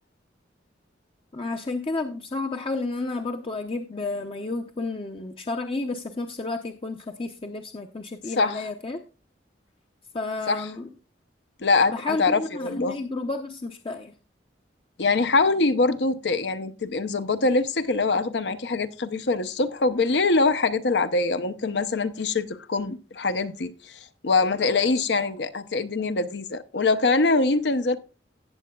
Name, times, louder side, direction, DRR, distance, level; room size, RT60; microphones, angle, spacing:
voice 1, 1.3-9.0 10.1-10.9 11.9-14.1, left 3 dB, 30° left, 0.6 m, -31 dB
voice 2, 8.4-8.7 10.5-10.6 11.6-13.0 15.0-28.0, left 3 dB, 70° left, 0.7 m, -24 dB
17.0 x 7.5 x 2.3 m
head